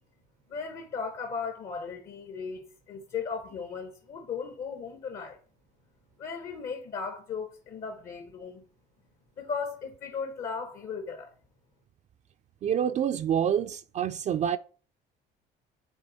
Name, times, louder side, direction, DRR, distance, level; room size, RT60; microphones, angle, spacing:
voice 1, 0.5-5.4 6.2-8.6 9.4-11.3, left 5 dB, 55° left, 1.1 m, -36 dB
voice 2, 12.6-14.6, right 9 dB, 45° right, 0.4 m, -27 dB
9.9 x 3.4 x 4.1 m
cardioid pair, 110°, 17 cm